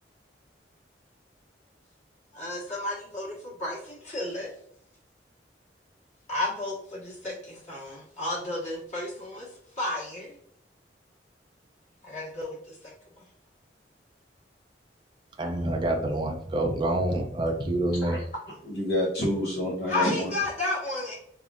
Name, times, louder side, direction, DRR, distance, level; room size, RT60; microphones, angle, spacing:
voice 1, 2.3-4.5 6.3-9.5 9.8-10.3 12.0-12.6 19.9-21.1, left 2 dB, 40° left, -6 dB, 1.5 m, -32 dB
voice 2, 15.4-18.2, right 1 dB, 25° right, 3 dB, 0.4 m, -27 dB
voice 3, 18.0-20.3, left 1 dB, 65° left, -4 dB, 1.0 m, -29 dB
3.6 x 3.4 x 2.5 m, 0.67 s
head